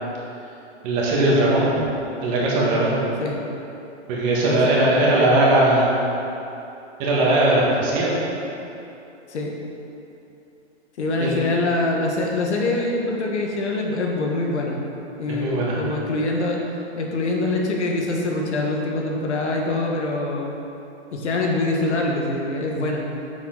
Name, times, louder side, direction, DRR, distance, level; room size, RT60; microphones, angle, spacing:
voice 1, 0.8-1.7 2.2-2.9 4.1-5.9 7.0-8.1 11.2-11.3 15.3-15.8, right 1 dB, 30° right, -5 dB, 1.9 m, -19 dB
voice 2, 4.4-5.4 9.3-9.5 11.0-14.8 15.2-16.6 16.9-20.5 21.1-23.0, left 2 dB, 75° left, 0 dB, 1.7 m, -24 dB
9.9 x 7.3 x 4.0 m, 2.9 s
hypercardioid pair, 160°, 34 cm